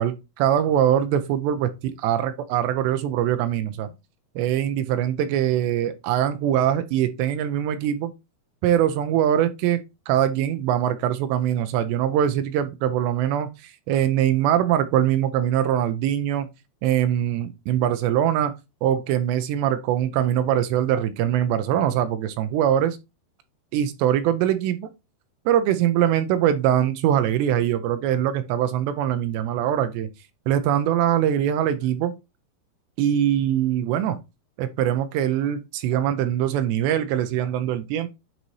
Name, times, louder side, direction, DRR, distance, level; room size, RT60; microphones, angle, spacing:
voice 1, 0.0-3.9 4.4-8.1 8.6-16.5 16.8-18.5 18.8-23.0 23.7-24.9 25.5-30.1 30.5-32.1 33.0-34.2 34.6-38.1, right 10 dB, 85° right, 2.8 m, -22 dB
9.1 x 4.0 x 3.1 m
omnidirectional pair, 5.0 m